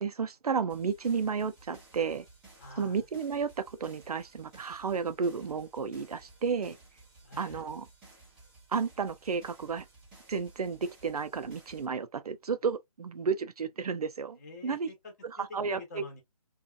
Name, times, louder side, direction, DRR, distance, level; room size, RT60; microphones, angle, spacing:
voice 1, 0.0-2.2 2.8-6.8 7.4-7.8 8.7-9.9 10.3-14.4 14.6-14.9 15.5-16.0, right 5 dB, 80° right, 0.5 m, -32 dB
sound 1, 0.7-11.9, right 2 dB, 5° right, 0.5 m, -56 dB
voice 2, 2.6-3.0 7.2-7.7 14.4-16.2, left 2 dB, 30° left, 0.8 m, -47 dB
2.7 x 2.4 x 2.3 m
figure-of-eight pair, 155°, 19 cm